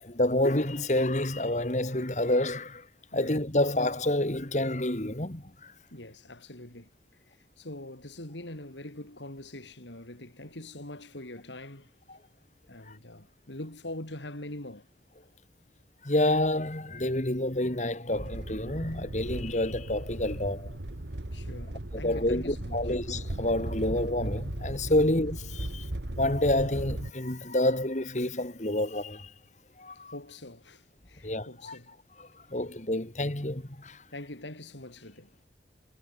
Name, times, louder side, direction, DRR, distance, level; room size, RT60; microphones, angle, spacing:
voice 1, 0.0-2.9 3.1-5.7 12.1-12.2 16.0-20.7 21.9-25.9 26.2-29.3 29.8-30.1 31.2-31.8 32.2-34.0, left 1 dB, 40° left, 2.1 m, -28 dB
voice 2, 5.9-6.9 7.3-11.9 12.7-14.9 21.3-22.8 24.9-25.1 30.1-31.9 34.1-35.3, left 1 dB, 90° left, 4.5 m, -43 dB
sound 1, 18.1-27.1, right 1 dB, 80° right, 1.8 m, -37 dB
head